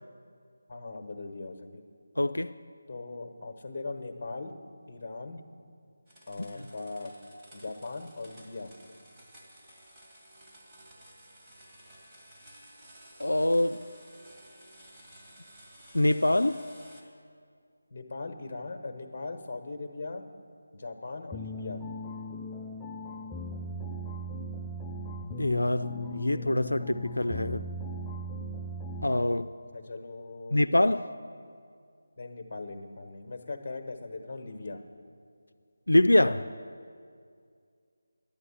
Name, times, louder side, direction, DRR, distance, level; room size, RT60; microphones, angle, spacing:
voice 1, 0.7-1.8 2.9-4.5 4.9-5.4 6.3-7.1 7.5-8.7 17.9-20.2 20.7-21.8 29.7-30.6 32.2-34.8, left 3 dB, 35° left, 6 dB, 1.2 m, -39 dB
voice 2, 2.2-2.5 13.2-13.8 15.9-16.6 25.4-27.6 29.0-29.5 30.5-31.1 35.9-36.5, left 1 dB, 90° left, 10 dB, 0.4 m, -24 dB
sound 1, 6.1-17.0, right 1 dB, 15° right, 1.9 m, -54 dB
sound 2, 21.3-29.4, equal, 10° left, 0.4 m, -38 dB
11.0 x 9.1 x 7.1 m, 2.2 s
figure-of-eight pair, 165°, 0 cm